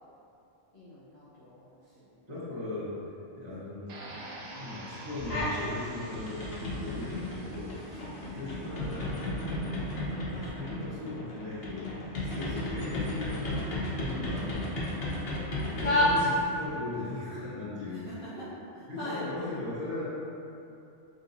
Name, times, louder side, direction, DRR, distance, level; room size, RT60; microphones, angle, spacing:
voice 1, 0.7-2.3 7.0-7.2 8.2-8.4 17.9-19.3, left 1 dB, 30° left, -14 dB, 0.9 m, -45 dB
voice 2, 2.3-3.0 3.3-14.6 15.7-18.0 18.9-20.0, left 2 dB, 25° right, -14 dB, 1.2 m, -38 dB
sound 1, 3.9-8.9, right 2 dB, 85° right, 0.9 m, -47 dB
sound 2, 5.2-5.7 6.0-16.7, left 1 dB, 60° left, 1.0 m, -32 dB
4.9 x 3.0 x 2.7 m, 2.7 s
omnidirectional pair, 1.2 m